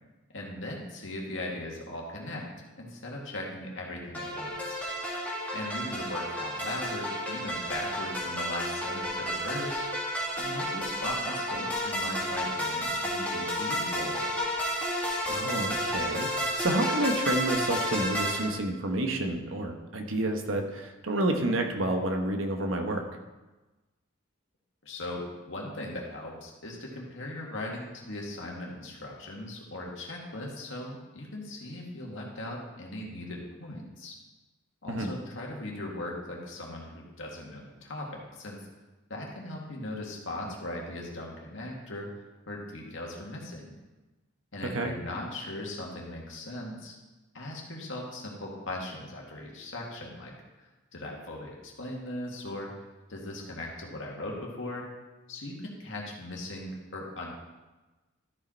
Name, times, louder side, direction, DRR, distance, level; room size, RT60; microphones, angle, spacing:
voice 1, 0.3-2.5 2.8-4.8 5.5-9.9 10.4-14.4 24.8-34.1 34.8-38.6 39.1-43.7 44.5-46.9 47.3-50.3 50.9-52.7 53.1-54.8 55.3-57.3, left 1 dB, 70° left, -1 dB, 2.0 m, -39 dB
sound 1, 4.1-18.4, equal, 10° left, 2.2 m, -31 dB
voice 2, 15.3-16.3 16.6-23.1 34.9-35.1 44.7-44.9, right 1 dB, 80° right, 3 dB, 1.1 m, -29 dB
13.0 x 5.1 x 4.4 m, 1.2 s
head